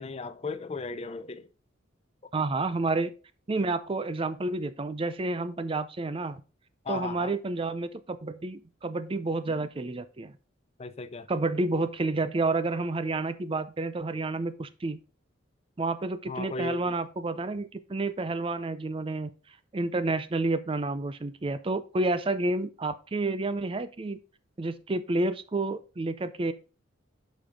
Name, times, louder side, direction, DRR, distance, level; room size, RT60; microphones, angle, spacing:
voice 1, 0.0-1.5 6.9-7.3 10.8-11.3 16.3-16.9, left 3 dB, 30° left, 0.5 m, -36 dB
voice 2, 2.3-3.1 3.5-6.4 6.9-10.3 11.3-15.0 15.8-19.3 19.7-24.2 24.6-26.5, right 2 dB, 25° right, 0.5 m, -30 dB
8.7 x 5.2 x 3.6 m
head